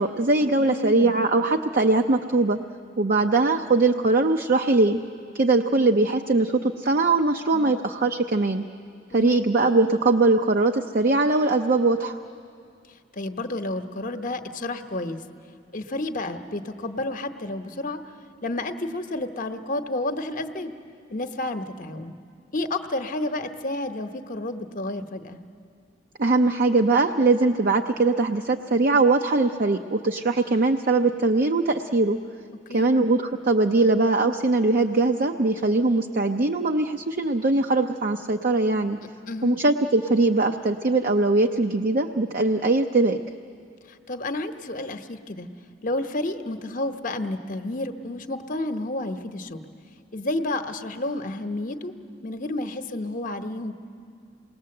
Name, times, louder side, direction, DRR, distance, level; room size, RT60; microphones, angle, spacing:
voice 1, 0.0-2.6 3.0-5.0 5.3-8.6 9.1-12.2 26.2-32.2 32.7-39.0 39.4-43.2, right 3 dB, 45° right, 5 dB, 0.6 m, -21 dB
voice 2, 0.6-1.1 7.5-7.8 9.1-9.4 13.1-15.2 15.7-18.0 18.4-20.7 21.1-22.1 22.5-25.4 32.7-33.0 39.3-39.6 43.9-45.5 45.8-49.6 50.1-51.9 52.2-53.7, left 2 dB, 45° left, 7 dB, 0.9 m, -31 dB
27.5 x 20.0 x 7.7 m, 2.3 s
head